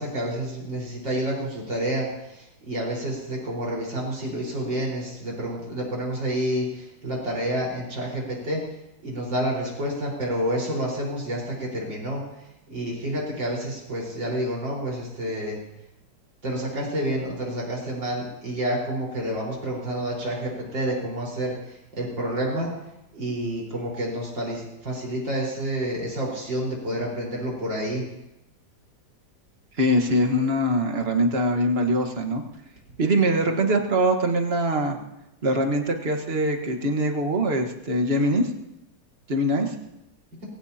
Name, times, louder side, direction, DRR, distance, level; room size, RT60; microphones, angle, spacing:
voice 1, 0.0-2.1 2.3-8.7 9.0-12.2 12.7-15.6 16.4-21.6 21.9-22.7 23.1-28.0, right 1 dB, 75° right, -3 dB, 5.6 m, -29 dB
voice 2, 29.8-32.4 33.0-35.0 35.4-38.5 39.3-39.7, right 1 dB, 35° right, 3 dB, 1.7 m, -23 dB
22.5 x 17.0 x 2.9 m, 0.88 s
omnidirectional pair, 2.0 m